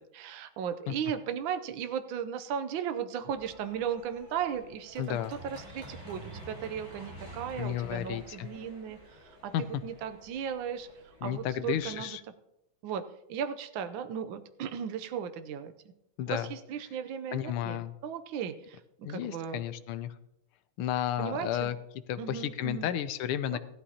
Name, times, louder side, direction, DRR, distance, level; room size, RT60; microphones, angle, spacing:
voice 1, 0.1-5.2 5.4-10.9 11.2-12.2 12.8-15.7 16.3-19.6 21.2-21.7 22.2-22.9 23.5-23.6, right 8 dB, 70° right, 10 dB, 1.4 m, -36 dB
sound 1, 3.3-11.9, right 1 dB, 20° right, 5.1 m, -50 dB
voice 2, 5.0-5.3 7.6-8.5 9.5-9.6 11.2-12.2 16.2-16.5 17.3-17.9 19.0-20.1 20.8-21.8 22.1-23.6, left 11 dB, 85° left, 13 dB, 1.6 m, -32 dB
16.0 x 12.5 x 2.9 m, 0.84 s
omnidirectional pair, 2.4 m